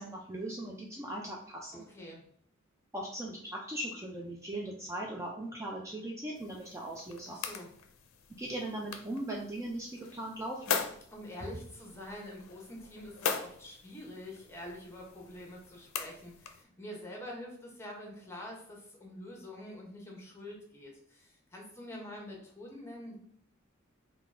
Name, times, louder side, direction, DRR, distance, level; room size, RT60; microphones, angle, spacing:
voice 1, 0.0-1.9 2.9-7.4 8.4-10.8, right 1 dB, 15° right, -2 dB, 0.4 m, -39 dB
voice 2, 1.7-2.2 7.2-7.7 11.1-23.2, left 1 dB, 15° left, -1 dB, 1.0 m, -46 dB
sound 1, 6.3-16.6, left 6 dB, 85° left, 0.5 m, -41 dB
3.8 x 2.3 x 3.7 m, 0.63 s
head